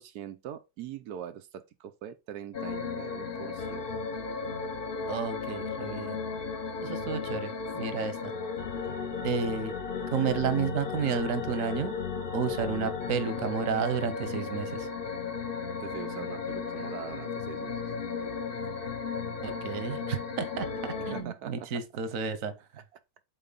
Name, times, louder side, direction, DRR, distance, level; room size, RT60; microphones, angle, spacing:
voice 1, 0.0-3.9 6.9-7.0 7.8-8.1 8.8-9.0 15.8-17.8 21.1-21.8, right 10 dB, 90° right, 0.8 m, -42 dB
sound 1, 2.5-21.2, left 5 dB, 60° left, 0.5 m, -35 dB
voice 2, 5.1-6.2 6.8-8.3 9.2-9.7 10.1-11.9 12.3-14.9 19.4-22.5, right 6 dB, 55° right, 0.9 m, -31 dB
7.8 x 3.9 x 3.9 m
omnidirectional pair, 2.4 m